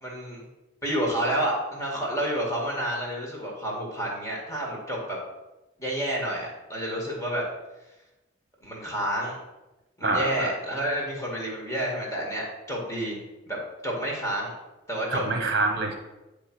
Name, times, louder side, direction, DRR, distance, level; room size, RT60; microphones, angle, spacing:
voice 1, 0.0-0.4 0.8-5.2 5.8-7.4 8.6-9.4 10.0-13.2 13.5-13.6 13.8-14.5 14.9-15.2, right 1 dB, 15° left, -3 dB, 2.0 m, -29 dB
voice 2, 10.0-10.5 15.1-15.9, right 3 dB, 50° right, 4 dB, 1.0 m, -26 dB
9.7 x 3.4 x 6.0 m, 1.0 s
head